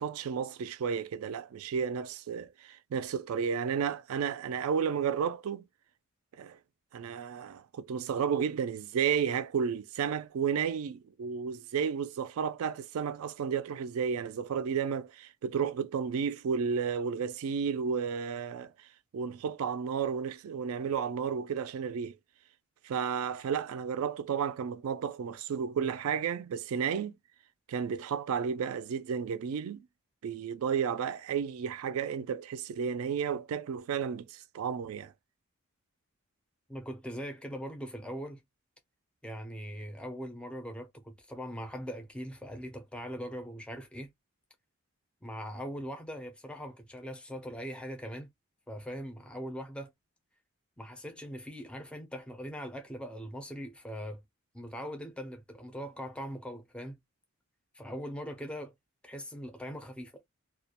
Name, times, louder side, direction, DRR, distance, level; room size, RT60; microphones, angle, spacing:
voice 1, 0.0-5.6 6.4-6.6 6.9-18.9 19.1-22.2 22.8-27.1 27.7-29.9 30.2-35.1, right 7 dB, 80° right, 0.3 m, -32 dB
voice 2, 36.7-38.4 39.2-44.1 45.2-48.3 48.7-49.9 50.8-54.2 54.5-57.0 57.7-58.7 59.0-60.2, equal, 5° left, 0.4 m, -41 dB
2.3 x 2.1 x 2.8 m
head